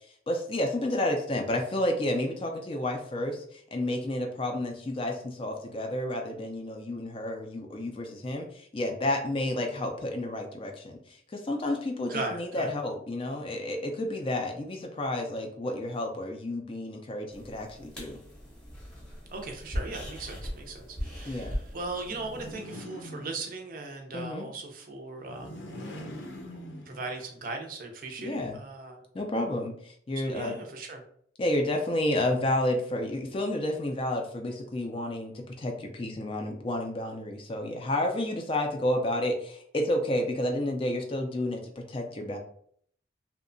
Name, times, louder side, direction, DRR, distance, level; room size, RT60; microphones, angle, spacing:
voice 1, 0.3-18.2 21.3-21.6 24.1-24.5 28.2-28.6 29.1-30.6 31.4-41.6 41.9-42.4, left 1 dB, 30° left, 3 dB, 0.3 m, -31 dB
voice 2, 12.1-12.7 19.3-25.7 26.9-29.0 30.3-31.0, right 3 dB, 45° right, 4 dB, 0.4 m, -38 dB
sound 1, 17.3-22.5, equal, 5° left, 0.8 m, -39 dB
sound 2, 22.1-23.8 25.2-27.4, left 1 dB, 85° left, 0.6 m, -43 dB
2.7 x 2.1 x 2.5 m, 0.63 s
head